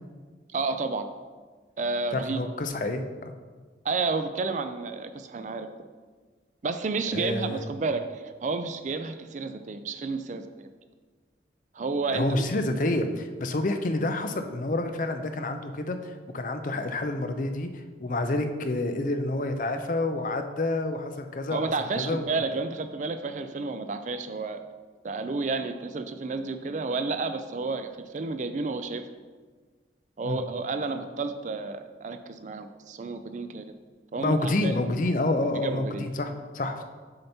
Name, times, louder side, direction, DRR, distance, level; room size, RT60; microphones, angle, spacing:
voice 1, 0.5-1.1 1.8-2.4 3.8-5.7 6.6-10.7 11.7-12.4 21.5-24.6 25.0-29.0 30.2-33.7 34.1-34.8 35.6-36.1, right 3 dB, 45° right, 9 dB, 0.4 m, -31 dB
voice 2, 2.1-3.3 7.1-7.6 12.1-22.3 30.2-30.4 34.1-36.8, left 2 dB, 45° left, 7 dB, 0.5 m, -28 dB
6.5 x 5.8 x 4.3 m, 1.4 s
head